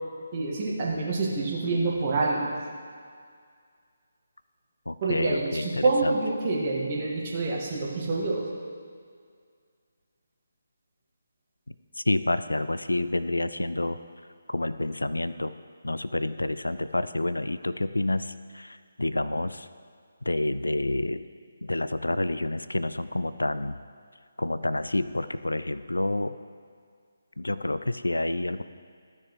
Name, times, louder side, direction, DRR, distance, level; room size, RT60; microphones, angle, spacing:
voice 1, 0.3-2.5 5.0-8.5, right 3 dB, 30° right, -4 dB, 1.8 m, -27 dB
voice 2, 4.9-6.1 12.0-14.0 14.5-15.5 15.8-19.7 20.2-21.2 21.6-23.8 24.4-26.4 27.4-28.6, left 2 dB, 75° left, 13 dB, 0.3 m, -28 dB
14.5 x 6.7 x 3.2 m, 2.1 s
figure-of-eight pair, 145°, 0 cm